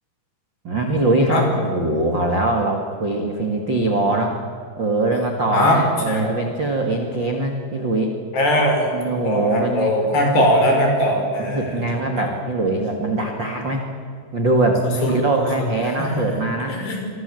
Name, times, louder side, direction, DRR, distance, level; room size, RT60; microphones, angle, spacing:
voice 1, 0.6-4.3 4.8-8.1 8.9-10.4 11.4-13.9 14.3-16.7, right 2 dB, 45° right, 2 dB, 1.6 m, -22 dB
voice 2, 8.3-8.9 9.3-11.8 12.2-12.4 15.0-15.1 16.0-16.2 16.7-17.1, left 1 dB, 55° left, 2 dB, 7.6 m, -20 dB
28.0 x 23.5 x 7.9 m, 2.3 s
omnidirectional pair, 5.6 m